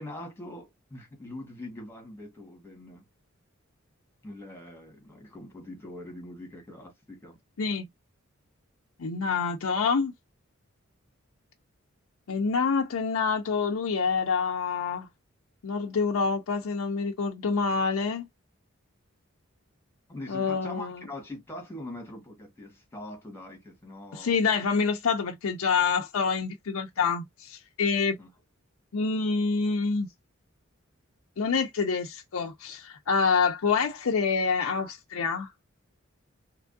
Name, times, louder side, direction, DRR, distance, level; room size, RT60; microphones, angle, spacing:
voice 1, 0.0-3.0 4.2-7.4 20.1-24.4 28.2-28.3, left 1 dB, 10° left, 1.4 m, -42 dB
voice 2, 9.0-10.1 12.3-15.1 15.6-18.3 20.3-20.9 24.1-28.2 28.9-30.1 31.4-35.5, left 5 dB, 75° left, 0.5 m, -27 dB
3.4 x 3.0 x 2.5 m
head